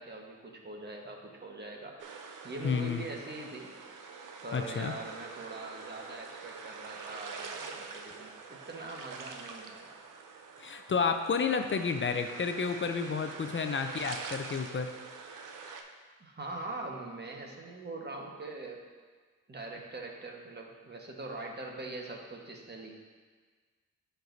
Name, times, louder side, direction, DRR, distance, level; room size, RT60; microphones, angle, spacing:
voice 1, 0.0-3.7 4.4-9.9 16.2-18.8 19.5-23.0, right 2 dB, 30° right, 0 dB, 1.4 m, -43 dB
sound 1, 2.0-15.8, right 5 dB, 70° right, 0.7 m, -45 dB
voice 2, 2.6-3.1 4.5-4.9 10.6-14.9, left 5 dB, 35° left, 7 dB, 0.5 m, -31 dB
11.5 x 4.6 x 2.7 m, 1.5 s
cardioid pair, 70°, 33 cm